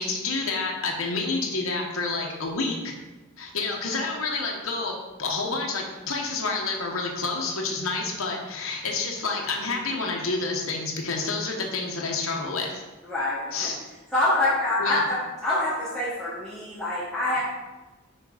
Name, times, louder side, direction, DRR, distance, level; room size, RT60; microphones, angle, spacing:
voice 1, 0.0-2.9 3.4-12.8 13.5-13.8 14.8-15.0, left 3 dB, 70° left, 0 dB, 1.1 m, -29 dB
voice 2, 13.0-13.7 14.1-17.4, left 2 dB, ahead, -11 dB, 1.4 m, -26 dB
6.2 x 4.5 x 5.0 m, 1.2 s
head